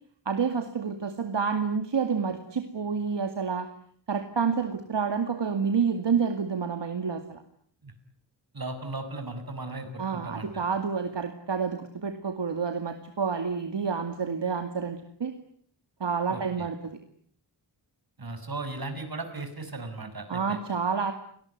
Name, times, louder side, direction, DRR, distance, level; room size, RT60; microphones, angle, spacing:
voice 1, 0.3-3.7 4.1-7.4 10.0-15.3 16.0-17.0 20.3-21.1, right 6 dB, 75° right, 7 dB, 2.4 m, -29 dB
voice 2, 8.5-10.7 16.3-16.7 18.2-20.6, right 2 dB, 55° right, 8 dB, 6.4 m, -37 dB
29.5 x 20.0 x 9.4 m, 0.62 s
wide cardioid pair, 75°, 43 cm